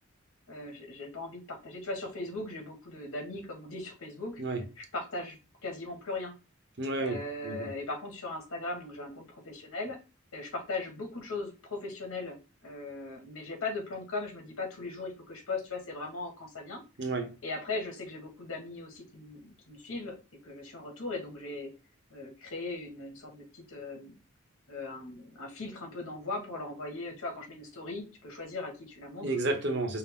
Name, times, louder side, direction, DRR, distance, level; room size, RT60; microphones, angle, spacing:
voice 1, 0.5-4.4 4.8-5.4 5.6-6.3 7.0-10.0 10.3-16.8 17.4-20.2 20.4-21.7 22.1-24.1 24.7-29.3, left 3 dB, 85° left, 1.5 m, -39 dB
voice 2, 6.8-7.7 17.0-17.4 29.2-30.0, right 2 dB, 55° right, 0.8 m, -31 dB
5.5 x 2.0 x 3.6 m
head